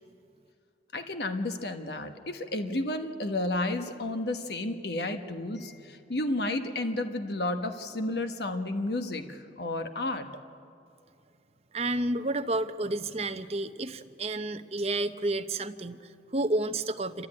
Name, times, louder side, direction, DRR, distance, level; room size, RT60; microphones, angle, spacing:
voice 1, 0.9-10.3, left 2 dB, 65° left, 7 dB, 1.2 m, -32 dB
voice 2, 11.7-17.3, right 2 dB, 35° right, 7 dB, 0.8 m, -31 dB
28.5 x 13.5 x 9.7 m, 2.5 s
head